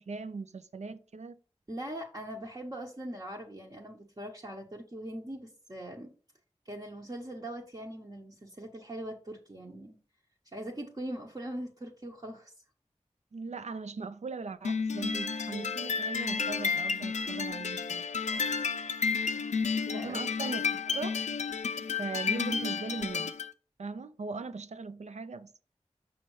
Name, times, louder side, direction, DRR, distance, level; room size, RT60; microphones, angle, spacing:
voice 1, 0.0-1.4 13.3-18.1 20.0-21.2 22.0-23.3 23.8-25.6, right 4 dB, 80° right, 0.5 m, -39 dB
voice 2, 1.7-6.1 6.6-10.0 10.5-12.5 18.5-18.8 19.1-20.2, right 1 dB, 35° right, 1.0 m, -41 dB
sound 1, 14.6-23.5, left 5 dB, 90° left, 0.4 m, -31 dB
6.4 x 5.6 x 3.1 m
wide cardioid pair, 45°, 12 cm